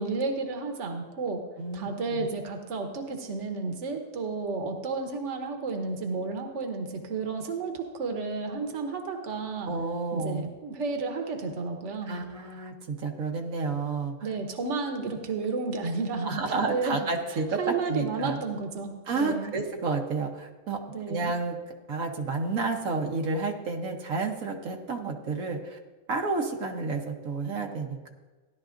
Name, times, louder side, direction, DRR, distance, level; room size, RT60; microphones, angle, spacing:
voice 1, 0.0-1.4 1.7-9.7 10.1-12.2 14.2-17.0 17.3-19.5 20.9-21.3, right 4 dB, 65° right, 4 dB, 1.3 m, -32 dB
voice 2, 1.6-2.2 9.6-10.5 12.0-14.1 16.3-18.4 19.1-20.8 21.1-21.6 21.9-25.8 26.1-28.1, right 3 dB, 85° right, 2 dB, 1.4 m, -30 dB
16.5 x 11.0 x 2.5 m, 1.3 s
omnidirectional pair, 1.4 m